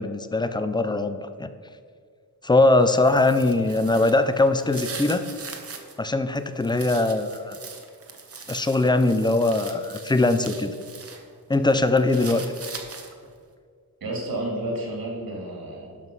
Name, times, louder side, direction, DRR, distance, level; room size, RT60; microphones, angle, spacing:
voice 1, 0.0-1.5 2.4-5.2 6.0-7.6 8.5-10.7 11.5-12.4, left 2 dB, 15° left, 10 dB, 0.4 m, -21 dB
sound 1, 2.8-5.9 6.4-11.2 11.5-13.3, right 5 dB, 40° right, 1.0 m, -41 dB
voice 2, 14.0-16.0, right 1 dB, 80° right, -2 dB, 2.6 m, -31 dB
11.5 x 5.6 x 5.4 m, 2.1 s
wide cardioid pair, 175°, 35 cm